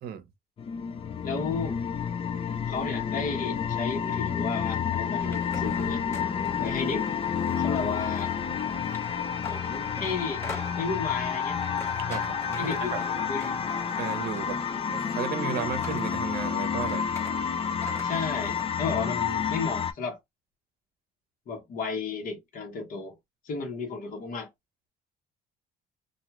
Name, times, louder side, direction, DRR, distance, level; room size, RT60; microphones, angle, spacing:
sound 1, 0.6-19.9, left 7 dB, 35° left, 0.5 m, -30 dB
voice 1, 1.2-1.8 2.7-6.0 6.6-7.1 7.6-8.3 9.5-10.4 10.8-11.6 12.6-13.9 18.0-20.2 21.5-23.2 23.4-24.5, left 4 dB, 55° left, 1.3 m, -33 dB
sound 2, 5.2-18.7, left 3 dB, 15° left, 1.3 m, -45 dB
voice 2, 12.0-13.0 13.9-14.6 14.9-17.1, right 8 dB, 65° right, 0.7 m, -34 dB
2.6 x 2.3 x 2.9 m
cardioid pair, 110°, 17 cm